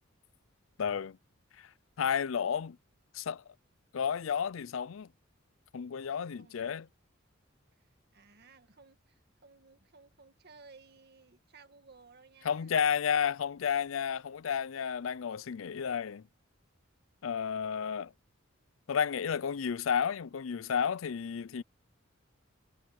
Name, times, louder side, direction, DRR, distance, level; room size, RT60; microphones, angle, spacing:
voice 1, 0.8-1.2 1.6-1.7 2.0-2.8 3.1-3.4 3.9-5.1 5.7-6.9 12.4-16.2 17.2-18.1 18.9-21.6, left 7 dB, 70° left, 0.4 m, -32 dB
voice 2, 6.3-6.8 7.7-12.8, right 4 dB, 50° right, 1.9 m, -58 dB
head